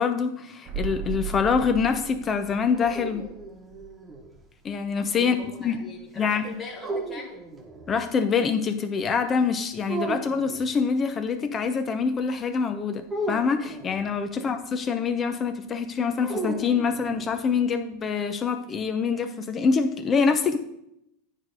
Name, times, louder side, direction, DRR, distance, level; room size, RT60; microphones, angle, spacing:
voice 1, 0.0-3.3 4.6-5.8 6.2-6.4 7.9-20.6, left 5 dB, 25° left, 8 dB, 0.6 m, -25 dB
sound 1, 0.7-4.4 4.7-4.8, right 5 dB, 40° right, 1.0 m, -37 dB
sound 2, 2.5-4.3 6.8-8.0 9.9-10.7 13.1-14.2 16.2-17.4, right 2 dB, 20° right, 1.2 m, -35 dB
voice 2, 5.1-7.4 14.3-14.5, left 3 dB, 10° left, -7 dB, 1.8 m, -41 dB
9.4 x 3.3 x 5.3 m, 0.79 s
supercardioid pair, 120°, 0 cm